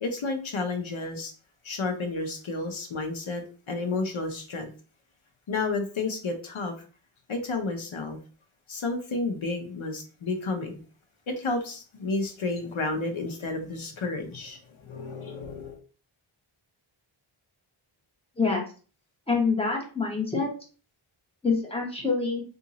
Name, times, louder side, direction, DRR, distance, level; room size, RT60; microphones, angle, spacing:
voice 1, 0.0-1.3 1.6-4.7 5.5-6.7 7.3-8.2 8.7-10.8 11.3-15.8, left 3 dB, 70° left, 4 dB, 0.9 m, -31 dB
voice 2, 19.3-20.5 21.4-22.4, left 4 dB, 10° left, 0 dB, 1.2 m, -26 dB
2.8 x 2.7 x 3.9 m, 0.38 s
wide cardioid pair, 95°, 50 cm